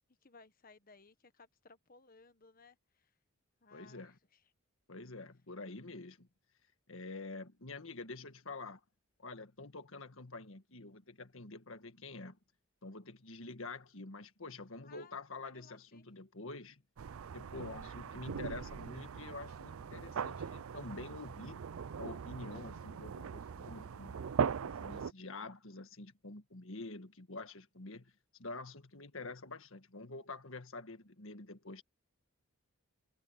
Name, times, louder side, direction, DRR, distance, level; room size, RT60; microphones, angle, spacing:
voice 1, 0.1-3.1 3.6-4.1 14.8-16.0, left 4 dB, 40° left, 1.3 m, -61 dB
voice 2, 3.7-4.2 4.9-6.3 6.9-8.8 9.2-12.4 12.8-16.8 17.3-21.7 22.0-24.2 24.6-28.1 28.4-31.8, left 3 dB, 65° left, 1.8 m, -47 dB
sound 1, 17.0-25.1, right 6 dB, 75° right, 0.4 m, -40 dB
head